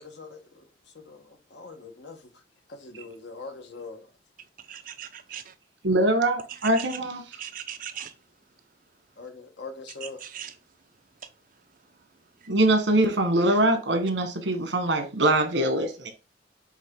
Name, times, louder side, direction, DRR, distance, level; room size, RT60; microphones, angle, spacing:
voice 1, 0.0-2.4 2.7-4.1 9.2-10.2, left 3 dB, 75° left, 1.3 m, -43 dB
voice 2, 4.7-5.5 6.8-6.9 7.4-8.1 10.0-10.5, right 9 dB, 50° right, 0.7 m, -39 dB
voice 3, 5.8-7.2 12.5-16.1, right 1 dB, 80° right, 1.4 m, -23 dB
7.3 x 3.5 x 3.8 m
head